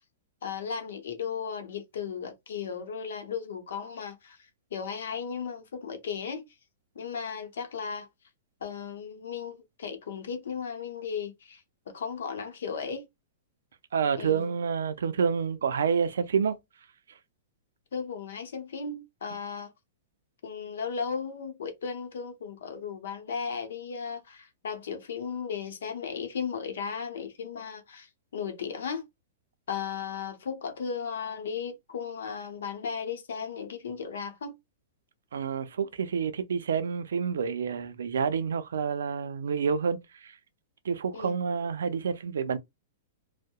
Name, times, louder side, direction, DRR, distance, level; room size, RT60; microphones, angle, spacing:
voice 1, 0.4-4.4 4.7-6.5 6.9-8.1 8.6-11.6 11.9-13.1 14.2-14.4 17.9-19.7 20.4-29.0 29.7-34.6 41.1-41.3, left 6 dB, 80° left, 0.7 m, -35 dB
voice 2, 13.9-16.6 35.3-40.3 40.8-42.6, right 6 dB, 85° right, 0.4 m, -28 dB
2.7 x 2.0 x 2.3 m
hypercardioid pair, 130°, 0 cm